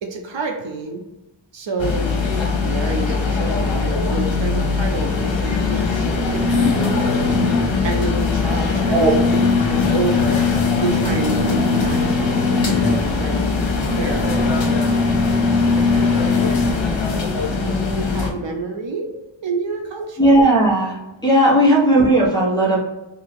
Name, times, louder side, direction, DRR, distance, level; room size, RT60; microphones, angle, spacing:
voice 1, 0.0-1.0 1.5-2.2 2.6-7.3 7.8-9.2 9.6-10.5 10.8-13.3 13.9-15.0 17.5-19.1 19.4-20.4 21.6-21.8, right 3 dB, 70° right, 3 dB, 0.6 m, -29 dB
sound 1, 1.8-18.3, left 4 dB, 70° left, 0.8 m, -20 dB
voice 2, 20.2-20.9 21.2-22.8, right 1 dB, 10° left, -4 dB, 1.2 m, -15 dB
2.7 x 2.7 x 4.2 m, 1.0 s
wide cardioid pair, 70°, 46 cm